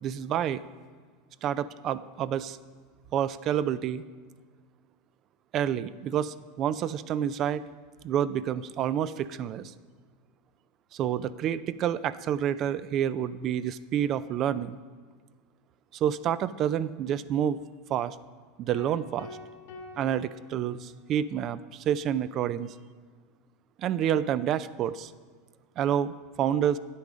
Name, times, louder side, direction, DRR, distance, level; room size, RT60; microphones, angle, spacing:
voice 1, 0.0-0.6 1.4-2.6 3.1-4.0 5.5-7.6 8.0-9.7 10.9-14.8 15.9-17.6 17.9-18.2 18.6-19.4 20.0-22.7 23.8-25.1 25.8-26.8, right 9 dB, 40° right, 15 dB, 0.3 m, -28 dB
sound 1, 18.7-21.2, left 3 dB, 75° left, 1.5 m, -46 dB
9.6 x 8.4 x 5.1 m, 1.5 s
supercardioid pair, 115°, 0 cm